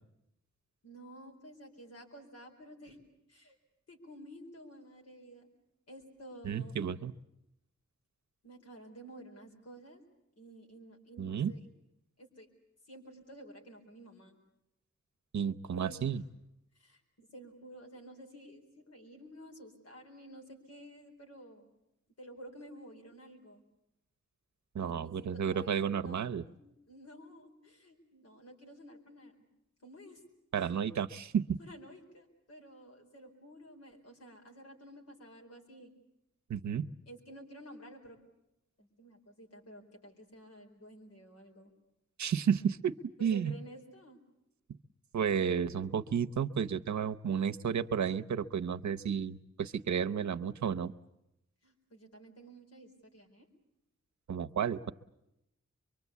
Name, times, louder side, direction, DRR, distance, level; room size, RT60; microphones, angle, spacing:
voice 1, 0.8-3.0 3.3-3.5 3.9-5.5 5.9-6.7 8.4-10.0 10.4-11.7 12.2-12.5 12.9-14.4 15.7-16.3 16.7-21.7 22.2-23.6 24.8-29.3 29.8-30.2 30.5-30.8 31.6-35.9 37.1-38.2 38.8-41.7 43.2-44.2 51.6-53.5, right 1 dB, 60° left, 2 dB, 4.6 m, -52 dB
voice 2, 6.4-7.1 11.2-11.5 15.3-16.2 24.7-26.4 30.5-31.6 36.5-36.9 42.2-43.5 45.1-50.9 54.3-54.9, right 7 dB, 75° right, 9 dB, 0.8 m, -32 dB
24.0 x 24.0 x 8.3 m, 0.85 s
wide cardioid pair, 160°, 29 cm